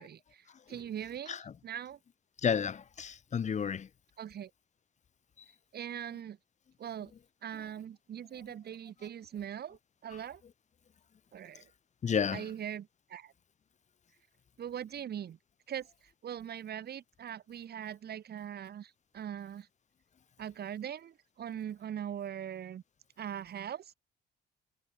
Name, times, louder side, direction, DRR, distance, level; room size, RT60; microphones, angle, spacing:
voice 1, 0.0-1.4 1.6-2.0 4.2-4.5 5.7-6.4 6.8-7.1 7.4-10.4 11.3-11.7 12.3-13.3 14.6-15.4 15.7-15.9 16.2-19.7 20.4-22.8 23.2-23.9, right 9 dB, 55° right, 1.1 m, -41 dB
voice 2, 2.4-3.9 10.1-10.2 12.0-12.5, left 7 dB, 35° left, 0.7 m, -32 dB
cardioid pair, 90°, 20 cm